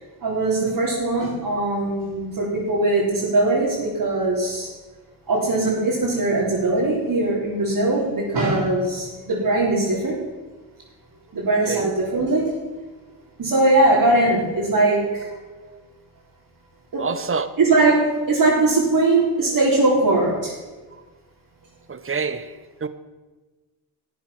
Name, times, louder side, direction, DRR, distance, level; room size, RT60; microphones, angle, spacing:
voice 1, 0.2-4.7 5.3-10.2 11.3-12.5 13.4-15.3 16.9-17.1 17.6-20.5, right 2 dB, 45° right, 4.2 m, -20 dB
voice 2, 17.0-17.5 21.9-22.9, right 5 dB, 25° right, 1.2 m, -28 dB
13.5 x 8.5 x 5.9 m
hypercardioid pair, 50°, 50 cm